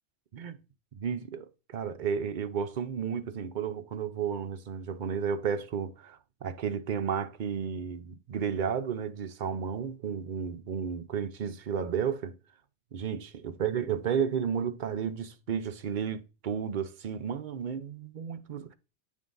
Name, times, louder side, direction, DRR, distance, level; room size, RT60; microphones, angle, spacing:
voice 1, 0.9-12.4 12.9-18.7, right 7 dB, 50° right, 0.7 m, -33 dB
8.9 x 3.7 x 3.8 m
omnidirectional pair, 1.2 m